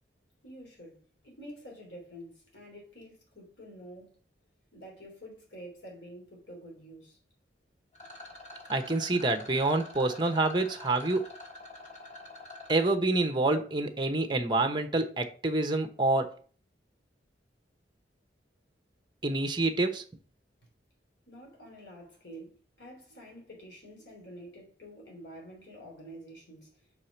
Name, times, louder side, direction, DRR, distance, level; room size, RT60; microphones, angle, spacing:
voice 1, 0.4-4.2 4.7-7.2 21.3-26.8, equal, 85° left, 3.2 m, -48 dB
Rattle, 7.9-12.9, left 2 dB, 40° left, 2.8 m, -47 dB
voice 2, 8.7-11.2 12.7-16.3 19.2-20.0, right 2 dB, 25° right, 0.9 m, -27 dB
5.8 x 4.8 x 5.7 m
head